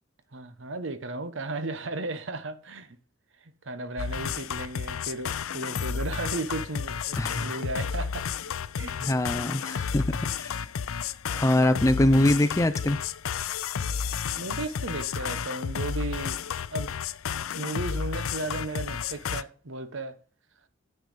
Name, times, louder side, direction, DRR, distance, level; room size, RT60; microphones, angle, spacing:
voice 1, 0.3-3.0 3.4-8.3 8.8-9.0 14.4-16.4 16.7-16.9 17.5-20.2, right 2 dB, 65° right, 1.0 m, -35 dB
sound 1, 4.0-19.4, left 7 dB, 80° left, 0.5 m, -32 dB
voice 2, 7.2-7.6 9.0-10.6 11.3-13.0, left 1 dB, 15° left, 0.4 m, -24 dB
8.1 x 6.6 x 5.1 m
head